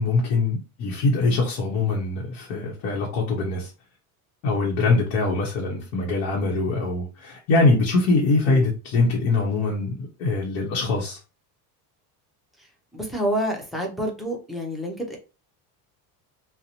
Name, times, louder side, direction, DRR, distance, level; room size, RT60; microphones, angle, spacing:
voice 1, 0.0-3.7 4.4-11.2, left 3 dB, 75° left, 0.9 m, -23 dB
voice 2, 12.6-15.2, equal, ahead, 0.4 m, -29 dB
2.6 x 2.1 x 2.8 m
cardioid pair, 130°, 43 cm